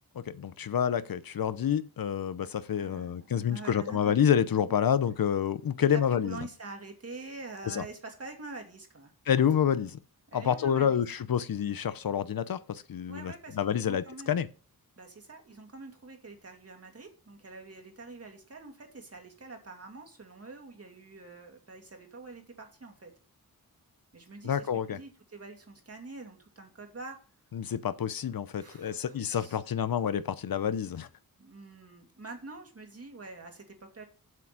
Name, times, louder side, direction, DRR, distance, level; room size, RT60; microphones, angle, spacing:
voice 1, 0.1-6.4 7.7-7.8 9.3-10.0 10.3-14.5 24.4-25.0 27.5-31.1, left 8 dB, 75° left, 0.8 m, -28 dB
voice 2, 2.7-4.2 4.7-4.8 5.9-9.1 10.3-11.0 13.1-14.4 15.0-23.1 24.1-27.2 28.5-29.6 31.4-34.0, right 3 dB, 40° right, 2.4 m, -46 dB
7.7 x 6.0 x 7.3 m
wide cardioid pair, 115°, 36 cm